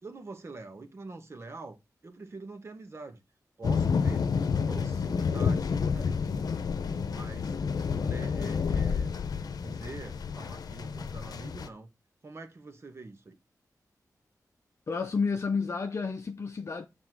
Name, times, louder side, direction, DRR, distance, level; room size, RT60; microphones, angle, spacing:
voice 1, 0.0-1.8 2.0-3.2 3.6-4.3 4.6-6.5 7.0-7.6 7.9-9.1 9.5-11.9 12.2-13.4, right 3 dB, 40° right, 1.6 m, -45 dB
sound 1, 3.6-11.7, left 6 dB, 75° left, 0.8 m, -29 dB
voice 2, 14.9-16.9, left 5 dB, 45° left, 0.7 m, -30 dB
7.4 x 4.2 x 6.2 m
wide cardioid pair, 110°, 7 cm